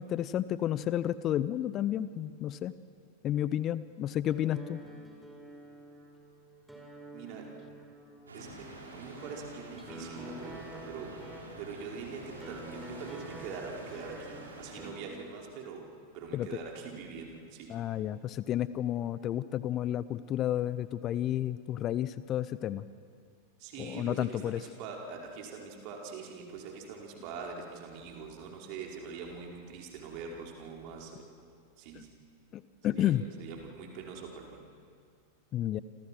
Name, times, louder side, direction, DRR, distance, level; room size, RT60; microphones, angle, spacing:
voice 1, 0.0-2.7 3.2-4.8 16.3-16.6 17.7-22.9 23.8-24.6 31.9-32.0 32.5-33.2 35.5-35.8, left 12 dB, 30° left, 16 dB, 0.7 m, -31 dB
sound 1, 4.2-15.0, right 1 dB, 5° right, 4.5 m, -48 dB
voice 2, 7.1-7.6 8.3-11.2 11.6-15.9 16.1-17.7 23.6-31.3 31.8-32.1 32.9-33.1 33.4-34.6, right 5 dB, 45° right, 0 dB, 4.9 m, -43 dB
sound 2, 8.3-14.9, right 2 dB, 70° right, 6.0 m, -48 dB
28.5 x 27.0 x 6.2 m, 2.3 s
figure-of-eight pair, 90°, 0 cm